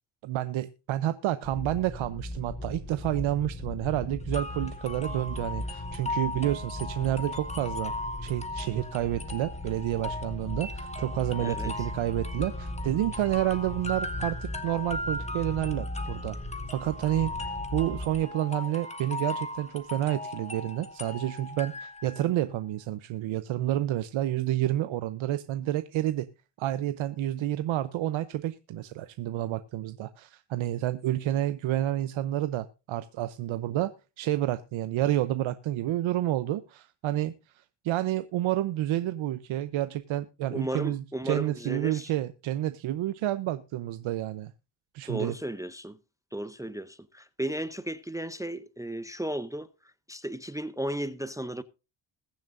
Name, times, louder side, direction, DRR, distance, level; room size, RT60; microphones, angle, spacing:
voice 1, 0.2-7.9 8.2-16.4 16.7-26.3 26.6-33.9 34.2-37.3 37.8-44.5 44.9-45.3, right 13 dB, 80° right, 0.8 m, -29 dB
sound 1, 1.4-18.2, left 1 dB, 30° left, 6.6 m, -38 dB
sound 2, 4.3-22.3, left 2 dB, 15° left, 1.5 m, -38 dB
voice 2, 11.4-11.7 40.5-42.1 45.1-46.0 46.3-49.7 50.1-51.6, right 1 dB, 5° right, 0.6 m, -34 dB
21.0 x 7.3 x 2.6 m
cardioid pair, 100°, 47 cm